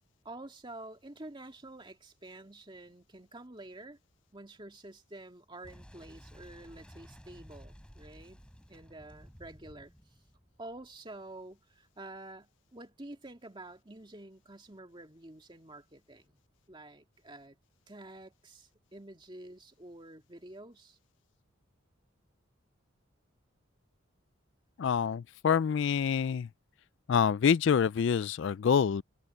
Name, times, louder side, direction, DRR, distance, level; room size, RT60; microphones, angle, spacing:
voice 1, 0.2-4.0 4.3-8.4 8.7-9.9 10.6-16.4 16.7-17.6 17.9-21.0, right 2 dB, 25° right, 2.3 m, -49 dB
Boom, 5.6-11.2, equal, 5° left, 5.1 m, -54 dB
voice 2, 24.8-26.5 27.1-29.0, left 7 dB, 60° left, 0.3 m, -26 dB
head